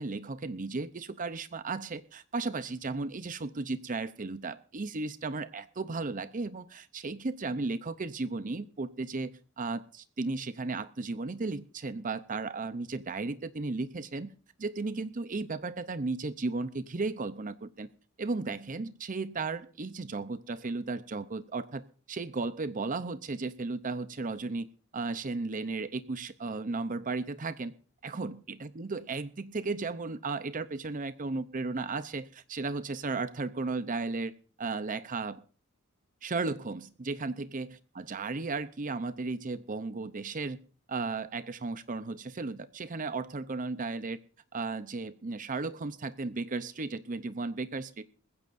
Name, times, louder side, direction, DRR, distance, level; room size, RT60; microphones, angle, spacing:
voice 1, 0.0-14.3 14.6-17.9 18.2-21.8 22.1-24.7 24.9-27.7 28.0-34.3 34.6-35.4 36.2-40.6 40.9-44.2 44.5-48.1, right 3 dB, 40° right, 12 dB, 0.7 m, -35 dB
20.5 x 15.5 x 2.6 m, 0.40 s
head